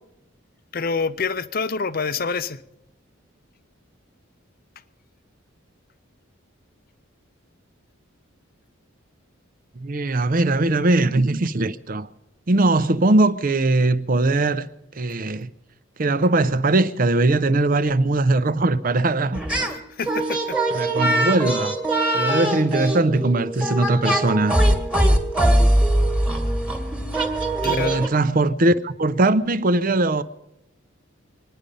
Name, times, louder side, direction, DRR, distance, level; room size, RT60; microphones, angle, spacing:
voice 1, 0.7-2.6 19.9-20.6 27.6-28.1, left 5 dB, 45° left, 0.6 m, -26 dB
voice 2, 9.8-12.1 12.5-14.7 15.0-15.5 16.0-19.4 20.7-21.8 22.1-24.6 27.6-30.2, right 2 dB, 40° right, 0.6 m, -20 dB
sound 1, 19.3-19.8 20.0-28.1, right 1 dB, 5° right, 1.6 m, -21 dB
24.5 x 10.0 x 5.3 m
head